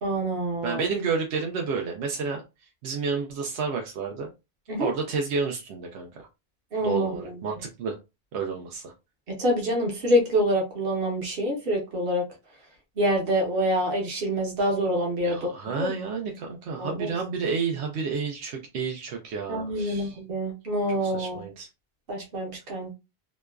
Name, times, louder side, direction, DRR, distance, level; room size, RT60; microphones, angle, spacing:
voice 1, 0.0-0.8 4.7-4.9 6.7-7.4 9.3-12.2 13.0-15.5 15.8-15.9 16.8-17.1 19.5-21.4 22.1-22.9, equal, 60° right, 1.1 m, -26 dB
voice 2, 0.6-2.4 2.8-4.3 4.8-6.3 6.8-8.0 8.3-8.9 15.2-20.2 20.9-21.7, right 5 dB, 85° right, 0.8 m, -30 dB
2.9 x 2.2 x 2.3 m
omnidirectional pair, 1.1 m